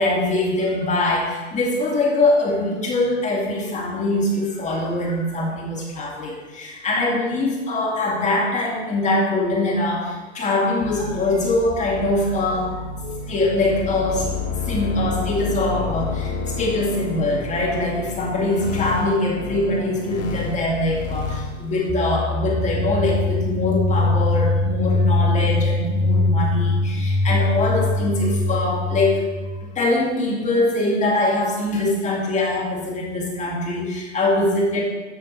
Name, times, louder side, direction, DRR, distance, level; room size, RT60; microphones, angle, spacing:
voice 1, 0.0-34.8, left 2 dB, 20° left, -2 dB, 2.2 m, -23 dB
sound 1, 10.8-21.9, left 4 dB, 50° left, 1.9 m, -30 dB
sound 2, 21.9-29.6, left 2 dB, 5° left, 1.0 m, -22 dB
11.0 x 6.3 x 3.2 m, 1.2 s
hypercardioid pair, 115°, 37 cm